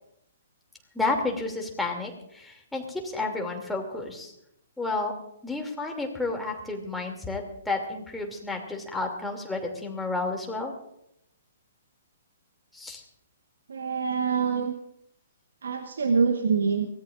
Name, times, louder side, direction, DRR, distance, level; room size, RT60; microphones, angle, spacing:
voice 1, 0.9-4.3 4.8-5.2 5.4-10.7 12.7-13.0, left 3 dB, 5° left, 1 dB, 2.7 m, -31 dB
voice 2, 13.7-14.7 15.6-16.9, right 5 dB, 65° right, 6 dB, 1.2 m, -25 dB
23.5 x 17.5 x 2.5 m, 0.78 s
figure-of-eight pair, 120°, 0 cm